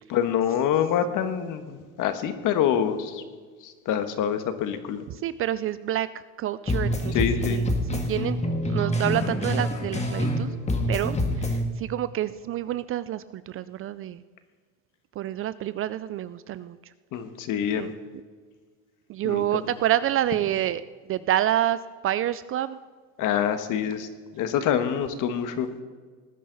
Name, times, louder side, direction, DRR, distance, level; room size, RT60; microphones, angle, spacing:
voice 1, 0.1-3.2 3.6-5.0 7.1-7.6 10.5-10.6 17.1-17.9 19.2-19.6 23.2-24.1 24.3-25.7, left 9 dB, 55° left, 9 dB, 1.5 m, -26 dB
voice 2, 5.1-6.1 6.4-7.7 8.1-8.4 8.7-10.5 10.9-14.2 15.2-16.8 17.7-17.9 19.1-20.8 21.1-22.8, right 12 dB, 35° right, 15 dB, 0.4 m, -28 dB
sound 1, 6.7-10.4 10.7-11.6, left 1 dB, 15° left, 1.9 m, -26 dB
19.0 x 10.0 x 4.0 m, 1.5 s
supercardioid pair, 110°, 38 cm